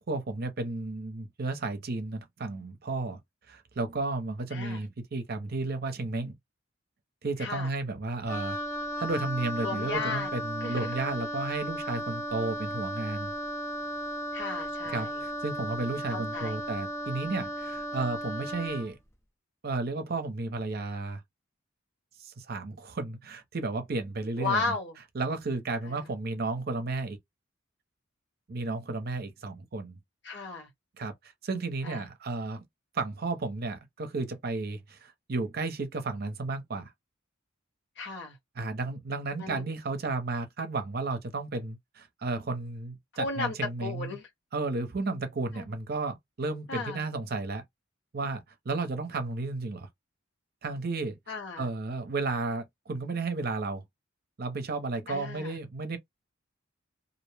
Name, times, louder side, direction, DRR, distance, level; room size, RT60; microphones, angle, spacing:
voice 1, 0.0-3.2 3.5-6.3 7.2-8.6 9.0-13.3 14.9-19.0 19.6-21.2 22.2-24.7 25.1-27.2 28.5-30.0 31.0-32.6 32.9-36.9 38.6-44.2 44.5-47.6 48.1-49.9 50.6-51.2 51.6-53.8 54.4-56.0, right 3 dB, 50° right, 0.6 m, -33 dB
voice 2, 4.5-4.8 7.4-7.7 9.6-10.3 10.6-11.0 14.3-15.2 16.1-16.6 24.4-25.0 25.8-26.1 30.2-30.7 31.8-32.0 38.0-38.4 39.4-39.6 43.1-43.5 43.8-44.3 45.5-45.7 46.7-47.0 51.3-51.7 55.1-55.6, left 3 dB, 55° left, 1.2 m, -34 dB
Wind instrument woodwind instrument, 8.3-18.9, equal, 15° left, 0.5 m, -35 dB
2.5 x 2.0 x 3.2 m
head